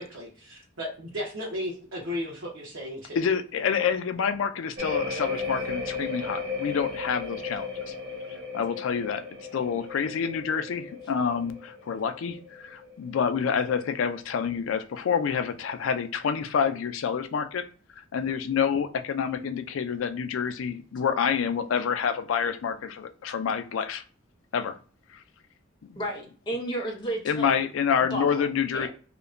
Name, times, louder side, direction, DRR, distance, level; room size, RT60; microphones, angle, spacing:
voice 1, 0.0-3.2, left 1 dB, 90° right, -4 dB, 0.9 m, -35 dB
voice 2, 3.1-7.9 8.5-9.2 9.5-17.6 18.1-24.0 24.5-24.8 25.1-25.2 25.9-26.0 27.2-28.9, left 7 dB, 85° left, 9 dB, 0.4 m, -28 dB
sound 1, 4.8-13.4 13.7-14.2, left 3 dB, 55° right, 0.7 m, -35 dB
voice 3, 26.0-27.6 28.1-28.4 28.7-28.9, right 1 dB, 25° left, -1 dB, 0.6 m, -32 dB
2.9 x 2.1 x 2.4 m, 0.40 s
head